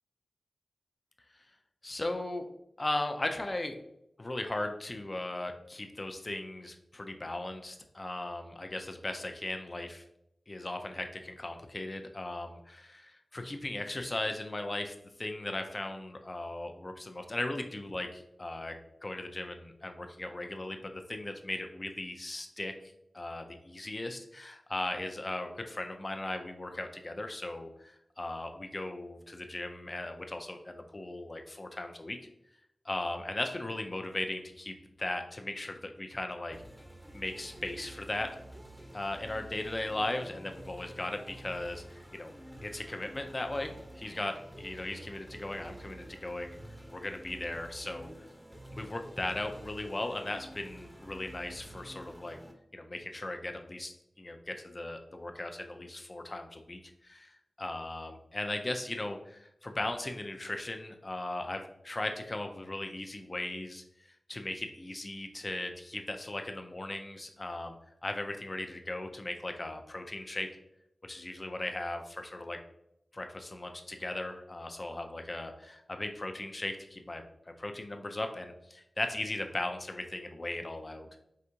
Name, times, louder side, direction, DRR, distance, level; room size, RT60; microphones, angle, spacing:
voice 1, 1.8-2.5 2.8-3.8 4.2-10.0 10.5-32.2 32.8-36.6 37.1-38.3 38.9-42.3 42.6-43.7 44.0-46.6 46.9-48.1 48.7-52.4 52.7-67.8 68.0-70.5 71.0-72.6 73.1-81.1, left 2 dB, 30° left, 5 dB, 0.5 m, -38 dB
sound 1, 36.5-52.5, right 1 dB, 10° right, 0.7 m, -49 dB
4.9 x 3.4 x 2.8 m, 0.81 s
wide cardioid pair, 95°, 0 cm